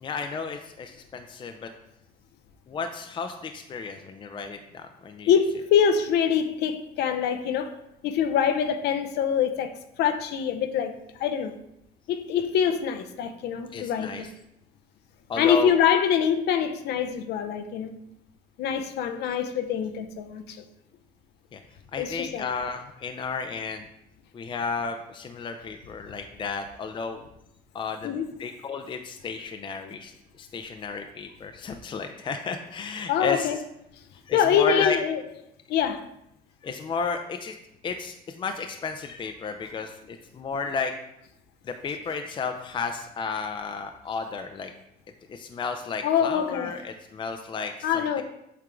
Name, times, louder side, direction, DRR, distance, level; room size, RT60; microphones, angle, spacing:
voice 1, 0.0-1.7 2.7-5.3 13.7-14.3 15.3-15.7 21.5-21.6 21.9-23.9 24.3-27.2 27.7-30.1 30.4-33.5 34.3-35.0 36.6-37.6 37.8-40.9 41.6-44.7 45.3-48.2, left 5 dB, 30° left, 5 dB, 0.5 m, -33 dB
voice 2, 5.3-10.9 11.2-11.5 12.1-14.3 15.4-17.9 18.6-20.6 22.0-22.5 28.0-28.3 33.1-33.6 34.3-35.2 35.7-36.0 46.0-46.7 47.8-48.2, left 8 dB, 75° left, 9 dB, 0.6 m, -24 dB
7.7 x 3.6 x 3.7 m, 0.81 s
cardioid pair, 110°, 17 cm